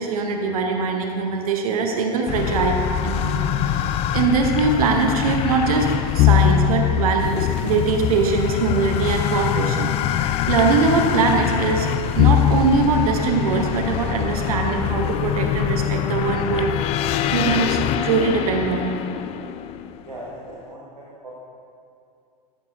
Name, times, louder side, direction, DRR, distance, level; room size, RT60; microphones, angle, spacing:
voice 1, 0.0-2.8 3.0-5.9 6.1-11.9 12.1-16.7 17.3-18.9, right 4 dB, 60° right, 3 dB, 1.0 m, -22 dB
sound 1, 2.3-20.2, left 10 dB, 30° left, 0.3 m, -23 dB
voice 2, 20.0-21.3, right 1 dB, 85° right, -6 dB, 1.4 m, -39 dB
14.0 x 11.0 x 2.6 m, 2.5 s
figure-of-eight pair, 85°, 21 cm